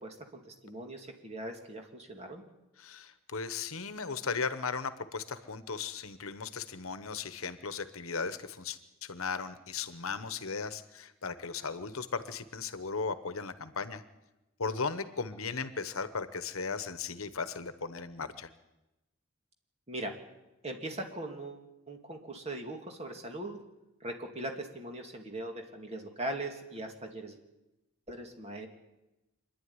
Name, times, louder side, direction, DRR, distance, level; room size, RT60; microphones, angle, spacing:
voice 1, 0.0-2.4 19.9-20.1 20.6-23.6 24.0-27.4 28.1-28.7, right 1 dB, 30° right, 3 dB, 2.5 m, -40 dB
voice 2, 2.8-14.0 14.6-18.5, left 5 dB, 70° left, 11 dB, 1.2 m, -37 dB
25.5 x 11.0 x 9.7 m, 0.98 s
head